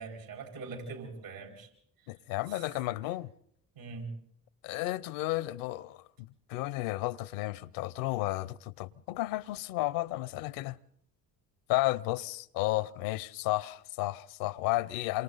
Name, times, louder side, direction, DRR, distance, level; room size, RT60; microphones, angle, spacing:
voice 1, 0.0-1.7 2.5-2.6 3.7-4.1, right 4 dB, 80° right, 4.7 m, -42 dB
voice 2, 2.1-3.3 4.6-10.8 11.7-15.2, left 18 dB, 75° left, 0.7 m, -33 dB
27.5 x 25.0 x 4.0 m
hypercardioid pair, 50°, 46 cm